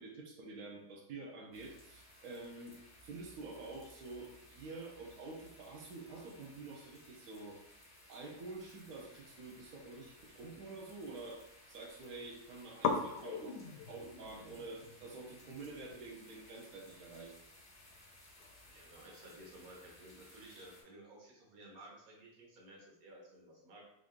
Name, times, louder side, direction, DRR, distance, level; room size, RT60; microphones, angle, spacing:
voice 1, 0.0-2.7 3.0-7.6 8.1-11.4 11.7-17.3, right 3 dB, 80° right, -1 dB, 0.8 m, -48 dB
sound 1, 1.5-20.8, left 1 dB, 15° left, 0.5 m, -60 dB
sound 2, 9.3-11.1 11.3-12.0 12.3-12.4 12.8-19.6, left 5 dB, 75° left, 1.2 m, -43 dB
voice 2, 18.6-23.8, right 1 dB, 50° right, -2 dB, 1.2 m, -55 dB
3.7 x 2.6 x 3.5 m, 0.82 s
omnidirectional pair, 2.4 m